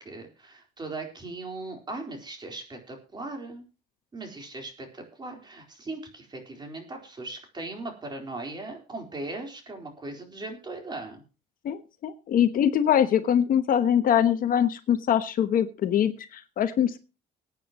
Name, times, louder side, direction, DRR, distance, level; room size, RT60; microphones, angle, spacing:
voice 1, 0.0-3.6 4.1-11.2, right 2 dB, 25° right, 3 dB, 4.1 m, -38 dB
voice 2, 11.6-17.0, left 9 dB, 55° left, 10 dB, 1.1 m, -23 dB
21.5 x 9.2 x 3.0 m, 0.32 s
cardioid pair, 110°, 17 cm